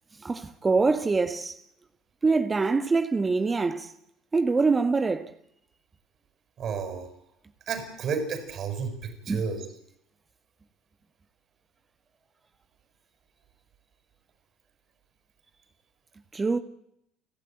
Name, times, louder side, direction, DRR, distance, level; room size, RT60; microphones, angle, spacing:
voice 1, 0.2-1.6 2.2-3.9 4.3-5.3 9.3-9.5 16.3-16.6, right 4 dB, 20° right, 1.6 m, -24 dB
voice 2, 6.6-7.1 7.7-9.6, right 5 dB, 45° right, 6.9 m, -31 dB
29.0 x 13.0 x 9.1 m
figure-of-eight pair, 60°, 0 cm